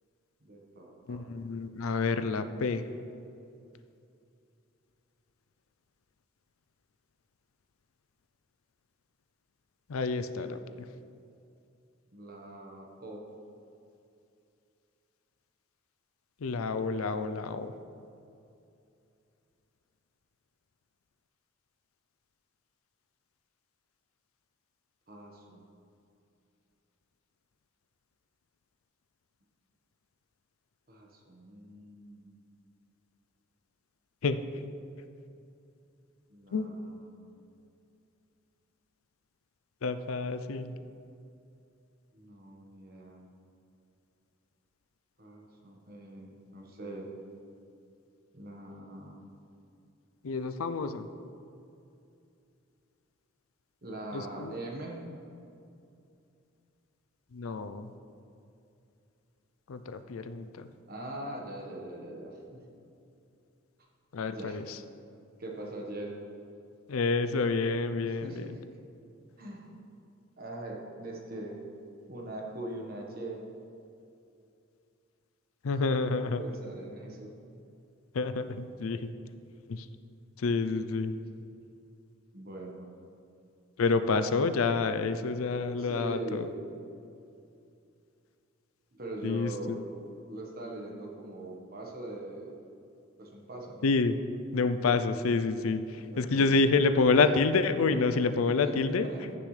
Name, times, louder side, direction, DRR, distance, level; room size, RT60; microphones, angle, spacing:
voice 1, 0.4-1.2 12.1-13.3 25.1-25.7 30.9-32.5 36.3-37.4 42.1-43.2 45.2-47.1 48.3-49.2 53.8-55.0 60.9-62.8 63.8-63.9 64.2-64.6 65.4-66.1 68.0-68.6 69.4-69.7 70.4-71.6 72.1-73.4 75.8-77.3 82.3-82.9 85.7-86.5 88.9-89.8 90.3-92.6 93.2-93.9 96.1-96.6 96.9-97.1 97.9-98.1 98.5-99.3, right 1 dB, 45° right, 0 dB, 1.4 m, -42 dB
voice 2, 1.1-2.9 9.9-10.6 16.4-17.7 34.2-34.4 36.5-36.7 39.8-40.7 50.2-51.1 54.4-54.5 57.3-57.9 59.7-60.7 64.1-64.6 66.9-68.5 75.6-76.4 78.1-79.1 79.7-79.8 80.4-81.2 83.8-86.5 89.2-89.8 93.8-94.2 94.5-99.1, left 4 dB, 85° left, 11 dB, 0.5 m, -28 dB
15.5 x 7.0 x 3.3 m, 2.6 s
head